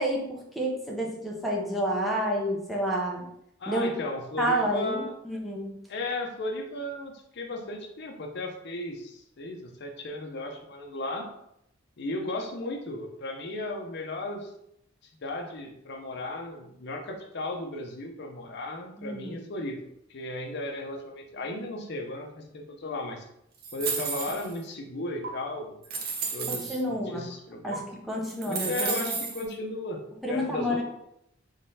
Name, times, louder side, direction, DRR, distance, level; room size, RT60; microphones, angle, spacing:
voice 1, 0.0-3.2 3.7-3.9 4.4-5.7 19.0-19.4 26.5-27.2 27.6-29.1 30.2-30.8, equal, ahead, -3 dB, 0.6 m, -29 dB
voice 2, 3.6-5.1 5.9-11.3 12.0-14.5 15.2-19.8 20.1-23.3 23.7-26.0 26.3-27.9 28.5-30.0 30.3-30.8, left 2 dB, 55° left, 2 dB, 0.6 m, -35 dB
sound 1, 23.6-24.6 25.2-25.3 25.8-26.8 27.7-27.8 28.2-29.5, right 5 dB, 50° right, 0.6 m, -32 dB
3.7 x 3.1 x 2.7 m, 0.77 s
head